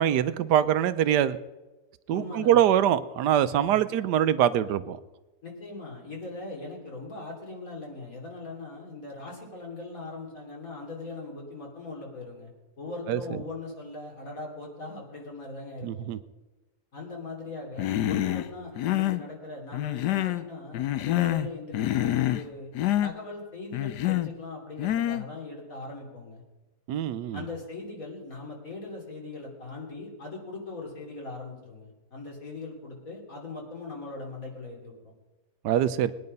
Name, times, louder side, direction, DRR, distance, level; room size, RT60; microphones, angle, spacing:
voice 1, 0.0-1.4 2.1-5.0 13.1-13.2 15.8-16.2 26.9-27.4 35.6-36.1, right 10 dB, 90° right, 13 dB, 1.3 m, -23 dB
voice 2, 2.1-2.8 3.7-3.8 5.4-12.5 12.8-16.1 16.9-22.7 23.0-26.4 27.3-35.1, left 3 dB, 55° left, -1 dB, 3.5 m, -40 dB
Human voice, 17.8-18.5 18.8-19.2 19.7-20.5 20.7-21.5 21.7-22.5 22.8-23.1 23.7-24.3 24.8-25.3, left 13 dB, 85° left, 1.2 m, -26 dB
21.0 x 9.6 x 5.4 m, 1.1 s
omnidirectional pair, 1.7 m